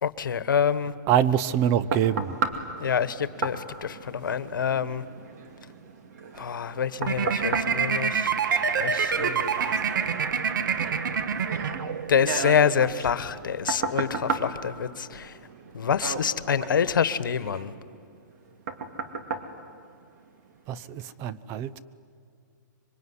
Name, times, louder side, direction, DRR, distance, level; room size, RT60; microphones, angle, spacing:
voice 1, 0.0-0.9 2.8-5.0 6.4-8.3 8.8-9.7 12.1-15.3 15.7-17.7, left 7 dB, 90° left, 14 dB, 1.3 m, -26 dB
voice 2, 1.1-2.3 20.7-21.8, right 10 dB, 25° right, 15 dB, 0.7 m, -25 dB
sound 1, 1.2-20.5 21.0-21.1, right 5 dB, 55° right, 2.5 m, -35 dB
sound 2, 7.1-12.3, right 6 dB, 75° right, 1.6 m, -26 dB
26.0 x 23.5 x 9.7 m, 2.3 s
hypercardioid pair, 155°, 11 cm